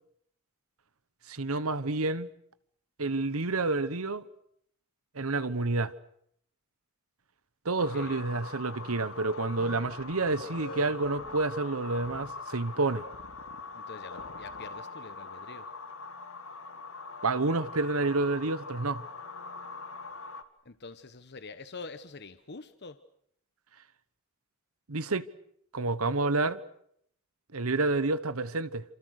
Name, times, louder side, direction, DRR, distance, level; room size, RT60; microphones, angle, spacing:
voice 1, 1.3-2.3 3.0-4.2 5.1-5.9 7.6-13.0 17.2-19.0 24.9-25.3 25.7-26.6 27.5-28.8, right 3 dB, 75° right, 1.2 m, -29 dB
sound 1, 7.8-20.4, left 4 dB, 65° left, 2.0 m, -43 dB
sound 2, 9.6-11.4 12.0-12.2 13.1-13.6 14.1-14.6, left 1 dB, 85° left, 3.7 m, -46 dB
voice 2, 13.7-15.7 20.6-23.0, left 4 dB, 50° left, 1.2 m, -45 dB
29.0 x 27.5 x 6.6 m
head